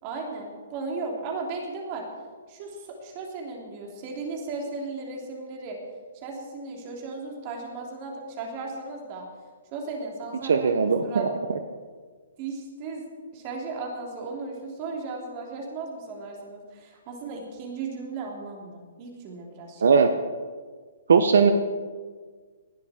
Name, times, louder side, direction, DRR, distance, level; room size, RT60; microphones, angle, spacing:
voice 1, 0.0-2.0 2.5-5.8 6.1-9.3 9.7-11.3 12.4-13.0 13.3-19.9, right 3 dB, 35° right, 0 dB, 3.3 m, -36 dB
voice 2, 10.4-11.3 19.8-20.1 21.1-21.5, right 5 dB, 80° right, 8 dB, 1.1 m, -19 dB
19.5 x 12.0 x 4.5 m, 1.5 s
hypercardioid pair, 155°, 0 cm